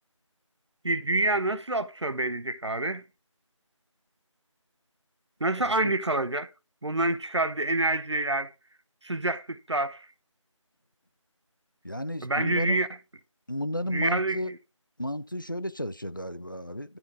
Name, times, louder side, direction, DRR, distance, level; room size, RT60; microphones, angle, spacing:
voice 1, 0.8-3.0 5.4-6.5 6.8-8.5 9.0-10.1 12.2-12.9 13.9-14.6, right 2 dB, 60° right, 0.7 m, -27 dB
voice 2, 5.6-6.0 11.8-12.8 13.5-14.5 15.0-17.0, equal, 40° left, 0.4 m, -33 dB
11.5 x 4.6 x 3.6 m
figure-of-eight pair, 170°, 17 cm